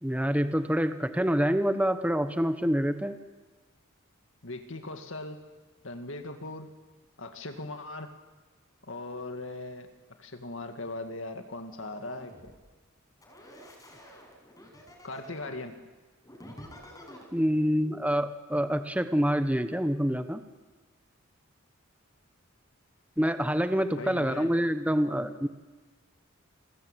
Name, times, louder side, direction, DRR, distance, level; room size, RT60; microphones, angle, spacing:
voice 1, 0.0-3.2 17.3-20.4 23.2-25.5, equal, 5° right, 9 dB, 1.1 m, -26 dB
voice 2, 4.4-5.4 5.8-6.7 7.2-8.1 8.8-9.9 10.2-12.5 15.0-15.7 24.0-24.5, left 2 dB, 65° left, 6 dB, 2.3 m, -39 dB
sound 1, 11.7-12.6 13.2-15.6 16.2-17.3, equal, 15° left, 6.2 m, -49 dB
28.5 x 21.5 x 9.1 m, 1.3 s
head